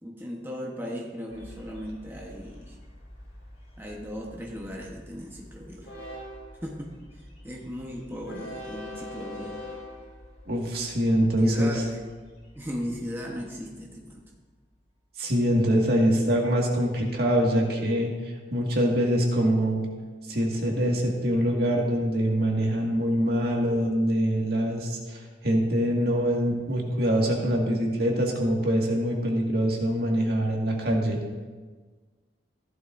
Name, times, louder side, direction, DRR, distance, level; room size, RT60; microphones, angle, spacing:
voice 1, 0.0-2.8 3.8-6.1 6.6-9.6 11.2-12.1 12.5-14.2, equal, 15° right, -2 dB, 1.1 m, -37 dB
Train, 1.3-14.3, left 1 dB, 85° left, 3.6 m, -45 dB
voice 2, 10.5-11.7 15.2-19.9 20.3-31.2, equal, 60° right, -1 dB, 1.9 m, -24 dB
15.0 x 11.0 x 2.6 m, 1.4 s
head